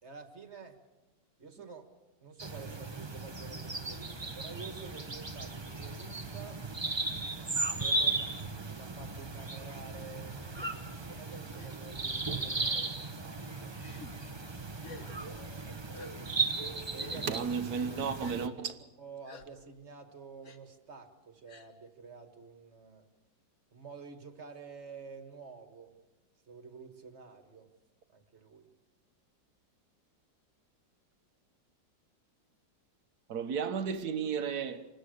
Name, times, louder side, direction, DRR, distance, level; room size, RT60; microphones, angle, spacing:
voice 1, 0.0-0.8 1.4-1.9 2.2-6.6 7.8-10.4 11.1-13.8 16.8-17.4 19.0-23.1 23.7-26.0 26.5-27.7 28.1-28.7, right 5 dB, 35° right, 1.9 m, -49 dB
sound 1, 2.4-18.5, right 3 dB, 20° right, 0.9 m, -36 dB
Gasp, 10.5-10.7 11.6-11.7 12.5-12.9 13.8-14.1 14.8-15.1 15.9-16.1 17.0-17.3 18.2-18.4 19.3-19.5 20.4-20.6 21.5-21.7, left 4 dB, 45° left, 1.6 m, -50 dB
voice 2, 17.2-18.8 33.3-34.9, right 6 dB, 60° right, 1.5 m, -34 dB
26.0 x 20.5 x 6.6 m
omnidirectional pair, 2.0 m